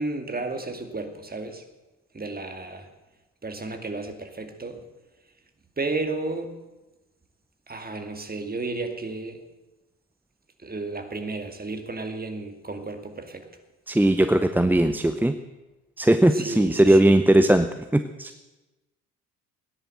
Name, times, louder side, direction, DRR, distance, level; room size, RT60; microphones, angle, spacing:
voice 1, 0.0-1.6 2.1-2.9 3.4-4.8 5.8-6.6 7.7-9.4 10.6-13.5 16.3-17.2, right 3 dB, 20° right, 6 dB, 2.3 m, -33 dB
voice 2, 13.9-15.3 16.0-18.3, right 1 dB, 5° right, 9 dB, 0.7 m, -19 dB
16.5 x 10.5 x 7.8 m, 1.1 s
hypercardioid pair, 50°, 43 cm